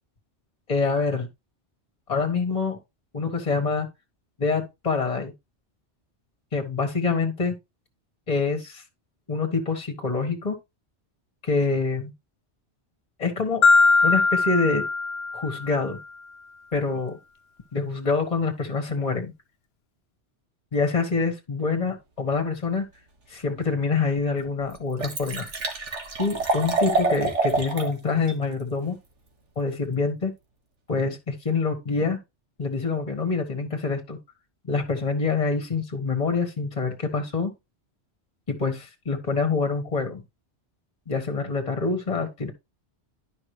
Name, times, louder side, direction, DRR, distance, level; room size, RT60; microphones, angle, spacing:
voice 1, 0.7-1.3 2.1-2.8 3.1-3.9 4.4-5.3 6.5-7.6 8.3-8.8 9.3-10.6 11.4-12.1 13.2-13.6 14.0-14.8 15.3-16.0 16.7-17.2 17.7-19.3 20.7-22.8 23.3-25.5 26.2-29.0 29.5-30.3 30.9-32.2 32.6-34.2 34.7-37.5 38.5-40.2 41.1-42.5, left 4 dB, 35° left, 1.6 m, -26 dB
Marimba xylophone, 13.6-15.8, left 3 dB, 65° left, 1.0 m, -20 dB
Liquid, 23.8-23.9 24.4-24.5 24.7-27.9 28.3-28.4, right 3 dB, 85° right, 2.1 m, -26 dB
12.0 x 5.3 x 3.2 m
omnidirectional pair, 1.2 m